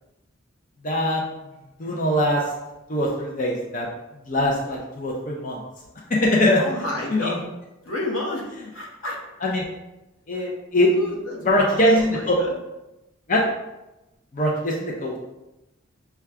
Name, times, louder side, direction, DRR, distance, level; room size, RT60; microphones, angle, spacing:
voice 1, 0.8-1.2 1.8-2.5 2.9-3.9 4.2-5.6 6.1-6.6 7.1-7.4 9.4-9.6 10.3-10.9 11.4-12.3 13.3-13.4 14.3-15.1, left 1 dB, 40° left, -2 dB, 0.6 m, -22 dB
voice 2, 6.6-7.4 7.8-9.2 10.9-12.6, left 2 dB, 85° left, -2 dB, 1.1 m, -31 dB
5.6 x 2.3 x 3.5 m, 0.96 s
head